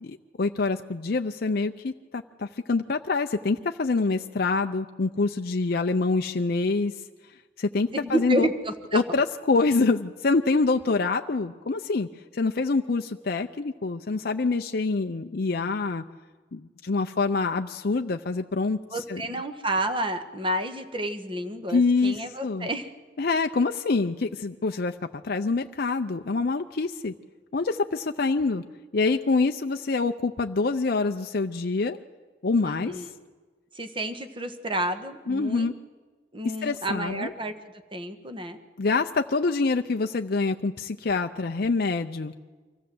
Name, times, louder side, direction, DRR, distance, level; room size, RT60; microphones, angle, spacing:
voice 1, 0.0-6.9 7.6-8.5 8.9-12.1 12.3-16.0 16.5-18.8 19.1-19.2 21.7-22.7 23.2-24.9 25.2-27.1 27.5-28.6 28.9-32.0 32.4-33.1 35.3-35.7 36.6-37.3 38.8-42.3, left 3 dB, 50° left, 5 dB, 0.5 m, -26 dB
voice 2, 7.9-9.0 18.9-22.9 32.6-33.1 33.7-35.7 36.3-37.5 37.9-38.6, right 1 dB, 25° right, 7 dB, 1.3 m, -30 dB
24.5 x 15.5 x 7.7 m, 1.4 s
head